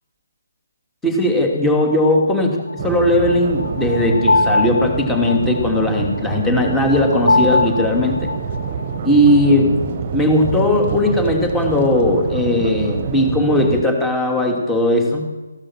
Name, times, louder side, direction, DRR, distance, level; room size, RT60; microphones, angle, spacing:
voice 1, 1.0-2.5 2.8-8.3 9.0-15.2, left 1 dB, 5° left, 1 dB, 2.8 m, -17 dB
sound 1, 2.7-9.5, left 2 dB, 80° left, 2.7 m, -22 dB
sound 2, 2.8-13.8, right 6 dB, 30° right, 1.4 m, -27 dB
15.5 x 12.0 x 7.4 m, 1.2 s
figure-of-eight pair, 150°, 0 cm